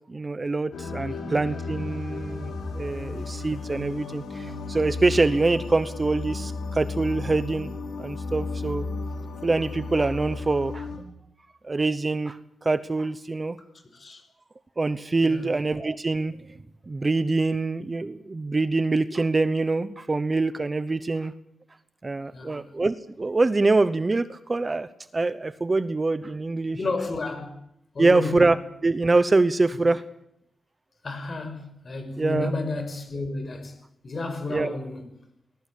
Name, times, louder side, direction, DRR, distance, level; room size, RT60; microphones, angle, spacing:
voice 1, 0.1-7.7 8.0-8.9 9.4-10.9 11.6-13.6 14.8-16.4 16.9-21.3 22.0-24.9 25.1-26.8 28.0-30.0 32.2-32.5 34.5-34.8, right 3 dB, 25° right, 0.9 m, -24 dB
sound 1, 0.7-11.0, left 3 dB, 85° left, 7.0 m, -34 dB
voice 2, 26.7-27.5 27.9-28.4 31.0-33.8 34.0-35.1, left 3 dB, 40° left, 5.6 m, -32 dB
24.0 x 20.0 x 8.6 m
wide cardioid pair, 125°, 0 cm